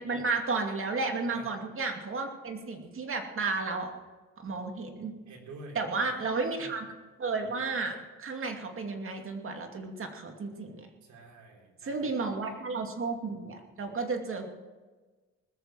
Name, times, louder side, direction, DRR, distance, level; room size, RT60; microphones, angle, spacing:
voice 1, 0.0-3.9 4.4-5.1 5.7-6.9 7.2-10.9 11.8-14.5, right 4 dB, 45° right, 4 dB, 2.5 m, -33 dB
voice 2, 5.3-6.2 11.0-12.2 12.5-12.6, right 2 dB, 75° right, 0 dB, 4.0 m, -49 dB
20.0 x 7.0 x 7.7 m, 1.3 s
cardioid pair, 90°, 30 cm